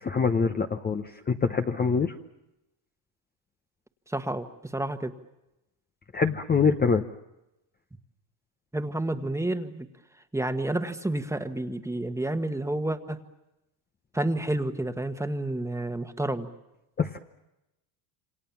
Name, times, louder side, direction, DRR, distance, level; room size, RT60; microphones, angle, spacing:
voice 1, 0.0-2.1 6.1-7.0 17.0-17.2, left 5 dB, 20° left, 5 dB, 1.0 m, -25 dB
voice 2, 4.1-5.1 8.7-9.9 10.3-13.2 14.1-16.5, right 1 dB, 5° right, 8 dB, 1.5 m, -30 dB
28.0 x 25.5 x 7.3 m, 0.94 s
supercardioid pair, 115°, 49 cm